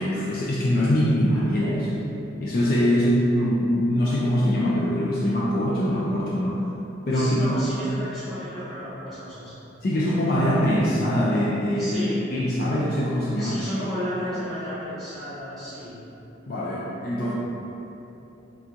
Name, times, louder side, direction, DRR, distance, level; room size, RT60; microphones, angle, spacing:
voice 1, 0.0-2.0 2.4-6.6 7.1-7.4 9.8-12.0 12.3-13.6 16.5-17.3, equal, 50° left, -6 dB, 0.3 m, -23 dB
voice 2, 7.1-9.5 11.8-12.2 13.4-15.9, equal, ahead, -14 dB, 1.3 m, -33 dB
3.4 x 2.9 x 2.5 m, 3.0 s
head